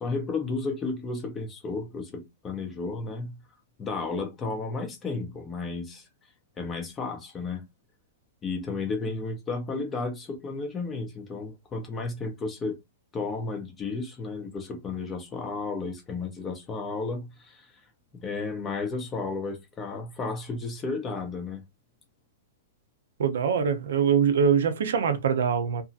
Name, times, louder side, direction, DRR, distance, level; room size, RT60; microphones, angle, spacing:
voice 1, 0.0-3.4 3.8-6.1 6.6-7.6 8.4-12.8 13.1-17.7 18.1-21.6, left 3 dB, 15° left, 0.5 m, -33 dB
voice 2, 23.2-25.8, right 7 dB, 70° right, 0.6 m, -23 dB
2.8 x 2.6 x 2.5 m
hypercardioid pair, 175°, 0 cm